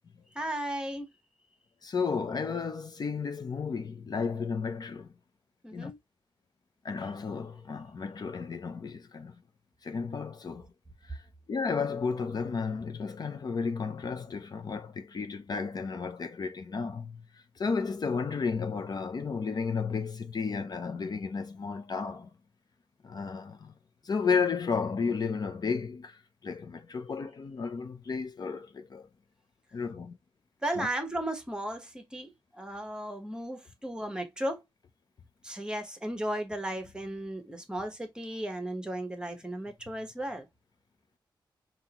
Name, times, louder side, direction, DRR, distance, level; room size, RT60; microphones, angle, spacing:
voice 1, 0.3-1.1 5.6-6.0 30.6-34.6 35.4-40.5, right 1 dB, 10° right, 1.2 m, -35 dB
voice 2, 1.8-5.1 5.7-5.9 6.8-9.3 9.8-10.7 11.1-11.2 11.5-17.2 17.6-22.3 23.0-23.7 24.0-29.1 29.7-30.2 30.8-30.9, left 5 dB, 50° left, 0.7 m, -33 dB
5.6 x 3.0 x 3.0 m
wide cardioid pair, 125°, 9 cm